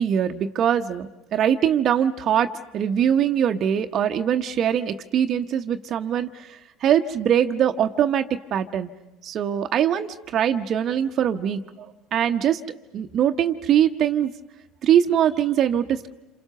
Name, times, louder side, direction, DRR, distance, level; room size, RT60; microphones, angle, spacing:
voice 1, 0.0-8.9 9.2-12.6 12.9-14.3 14.8-16.1, right 9 dB, 50° right, 6 dB, 0.8 m, -22 dB
27.5 x 27.0 x 6.8 m, 0.98 s
hypercardioid pair, 75°, 0 cm